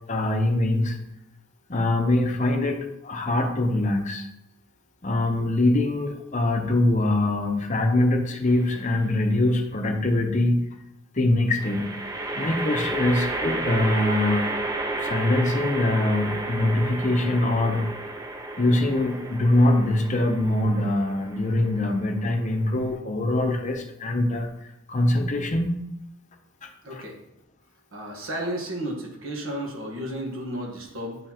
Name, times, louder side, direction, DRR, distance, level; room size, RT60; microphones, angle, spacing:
voice 1, 0.1-1.0 1.7-4.3 5.0-10.6 11.1-11.9 12.4-14.5 15.0-17.9 18.6-24.5 24.9-25.8 26.6-27.0, left 1 dB, 35° left, 4 dB, 0.7 m, -23 dB
sound 1, 8.5-9.1 11.6-22.9, right 2 dB, 15° right, 0.5 m, -32 dB
voice 2, 26.8-27.1 27.9-31.2, right 1 dB, 70° right, 0 dB, 1.5 m, -33 dB
8.9 x 4.3 x 2.9 m, 0.83 s
head